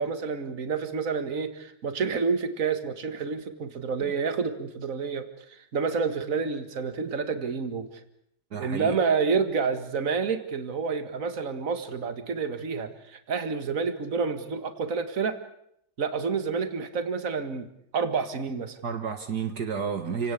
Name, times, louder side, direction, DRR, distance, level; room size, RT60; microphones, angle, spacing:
voice 1, 0.0-7.9 8.6-15.4 16.0-17.7 17.9-18.8, right 5 dB, 50° right, 9 dB, 2.2 m, -29 dB
voice 2, 8.5-9.0 18.8-20.3, right 6 dB, 65° right, 7 dB, 2.1 m, -31 dB
29.5 x 18.0 x 8.5 m, 0.76 s
omnidirectional pair, 1.9 m